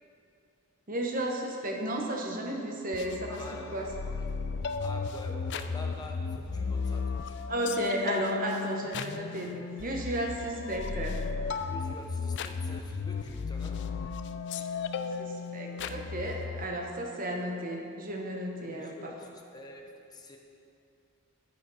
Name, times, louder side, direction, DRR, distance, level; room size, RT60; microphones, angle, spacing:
voice 1, 0.9-3.4 3.7-3.9 7.5-11.2 15.2-19.1, right 1 dB, 40° right, 1 dB, 1.1 m, -33 dB
sound 1, 2.9-16.6, left 5 dB, 50° left, 0.4 m, -35 dB
voice 2, 3.3-7.5 7.7-8.2 8.8-9.0 11.6-13.9 18.6-20.4, left 2 dB, 20° left, 1 dB, 0.9 m, -47 dB
10.0 x 9.2 x 4.1 m, 2.6 s
head